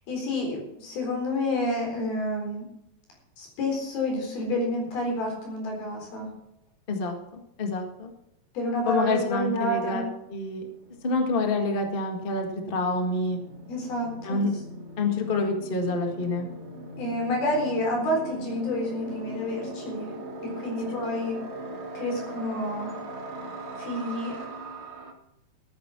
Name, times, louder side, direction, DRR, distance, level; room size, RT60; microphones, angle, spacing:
voice 1, 0.1-2.7 3.4-6.3 8.5-10.1 13.7-14.4 17.0-20.1 20.6-21.4 21.9-23.0 23.8-24.4, left 1 dB, 85° left, 1 dB, 6.0 m, -29 dB
voice 2, 6.9-8.1 8.8-10.0 10.3-10.7 11.0-13.4 14.2-14.5 15.0-16.5, left 2 dB, 35° left, 3 dB, 0.8 m, -27 dB
sound 1, 10.1-25.1, right 1 dB, 75° right, 0.6 m, -40 dB
14.0 x 9.4 x 6.0 m, 0.84 s
omnidirectional pair, 4.2 m